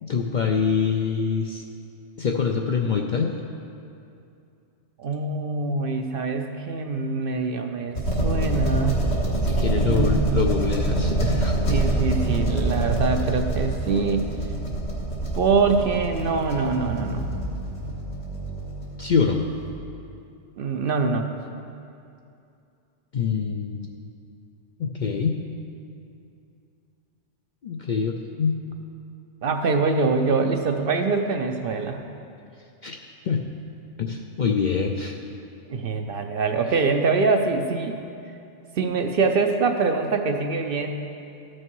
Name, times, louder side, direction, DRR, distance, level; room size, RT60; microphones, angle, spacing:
voice 1, 0.0-1.6 2.2-3.4 9.5-11.5 19.0-19.4 23.1-23.9 24.8-25.4 27.6-28.6 32.8-33.0 33.2-33.4 34.0-35.2, left 6 dB, 55° left, 2 dB, 0.5 m, -25 dB
voice 2, 5.0-8.0 8.2-9.0 9.8-10.5 11.7-14.2 15.3-17.3 20.6-21.3 29.4-32.0 35.7-38.0 38.8-41.0, right 4 dB, 60° right, 5 dB, 0.7 m, -24 dB
sound 1, 8.0-19.7, right 2 dB, 75° left, 2.0 m, -25 dB
13.5 x 6.4 x 4.6 m, 2.6 s
omnidirectional pair, 1.2 m